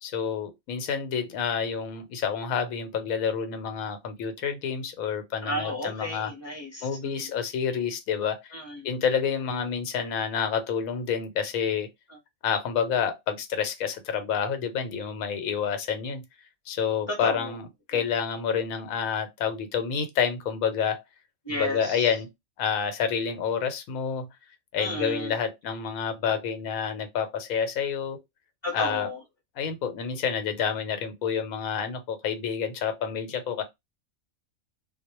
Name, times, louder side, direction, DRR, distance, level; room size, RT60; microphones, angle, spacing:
voice 1, 0.0-6.3 6.8-8.5 8.8-11.9 12.4-16.2 16.7-21.0 21.5-22.3 22.6-24.3 24.7-28.2 28.7-29.1 29.6-33.6, left 7 dB, 90° left, 1.0 m, -28 dB
voice 2, 5.4-7.3 8.5-8.9 17.1-17.5 21.4-22.1 24.8-25.3 28.6-29.2, left 1 dB, 25° left, 0.7 m, -33 dB
2.3 x 2.0 x 2.8 m
omnidirectional pair, 1.4 m